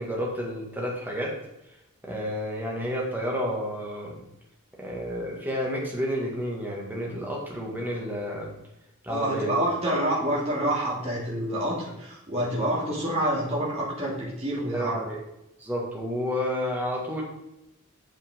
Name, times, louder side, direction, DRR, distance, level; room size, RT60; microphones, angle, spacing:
voice 1, 0.0-1.3 2.0-4.2 4.8-8.5 9.0-9.6 9.9-10.0 14.7-15.2 15.6-17.2, equal, 10° right, -3 dB, 2.1 m, -30 dB
voice 2, 9.1-15.1, right 1 dB, 30° right, -5 dB, 2.6 m, -27 dB
8.4 x 6.6 x 3.8 m, 0.87 s
head